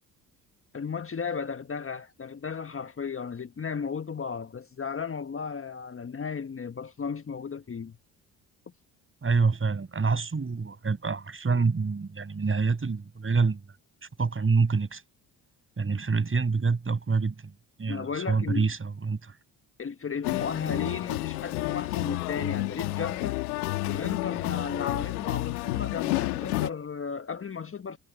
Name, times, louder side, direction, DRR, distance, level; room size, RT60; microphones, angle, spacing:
voice 1, 0.7-8.0 17.9-18.7 19.8-23.4 23.8-28.0, left 6 dB, 30° left, 1.4 m, -34 dB
voice 2, 9.2-13.6 14.2-15.0 15.8-17.5 17.8-19.3, right 4 dB, 30° right, 6.7 m, -26 dB
sound 1, 20.2-26.7, left 19 dB, 90° left, 1.9 m, -30 dB
hypercardioid pair, 60°, 43 cm